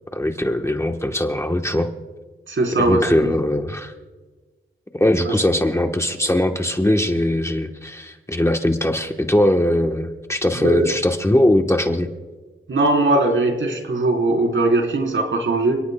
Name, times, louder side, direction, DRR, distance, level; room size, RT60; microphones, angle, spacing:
voice 1, 0.1-1.9 2.8-3.9 4.9-12.1, left 1 dB, 15° left, 4 dB, 1.0 m, -20 dB
voice 2, 2.5-3.3 5.2-5.3 10.6-10.9 12.7-15.8, right 2 dB, 65° right, 2 dB, 3.7 m, -20 dB
29.5 x 18.5 x 2.2 m, 1.3 s
wide cardioid pair, 130°, 21 cm